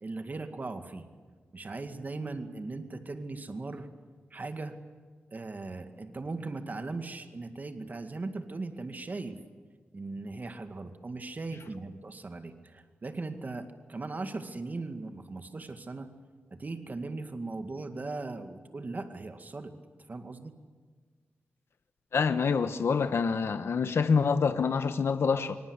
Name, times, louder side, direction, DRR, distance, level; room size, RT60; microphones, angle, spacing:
voice 1, 0.0-1.1 1.5-3.9 4.3-4.8 5.3-9.4 9.9-16.1 16.5-19.7 20.1-20.6, right 3 dB, 40° right, 2.1 m, -38 dB
voice 2, 22.1-25.6, left 5 dB, 75° left, 1.1 m, -26 dB
26.0 x 25.0 x 8.2 m
wide cardioid pair, 95°, 4 cm